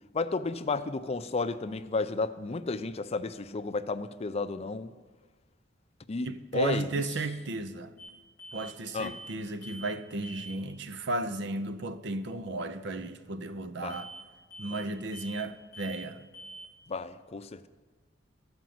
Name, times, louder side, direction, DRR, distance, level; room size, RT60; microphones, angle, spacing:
voice 1, 0.1-4.9 6.1-6.3 6.5-6.9 8.9-9.1 13.8-14.0 16.9-17.7, left 3 dB, 35° left, 0.5 m, -32 dB
voice 2, 6.2-7.9 8.5-14.1 14.6-16.3, right 2 dB, 65° right, 0.7 m, -34 dB
sound 1, 8.0-8.1 8.4-8.7 9.0-9.4 9.6-10.0 10.2-10.6 13.9-14.2 14.5-14.9 15.1-15.5 15.7-16.1 16.3-16.7, right 1 dB, 20° right, 2.8 m, -45 dB
13.5 x 5.2 x 7.7 m
head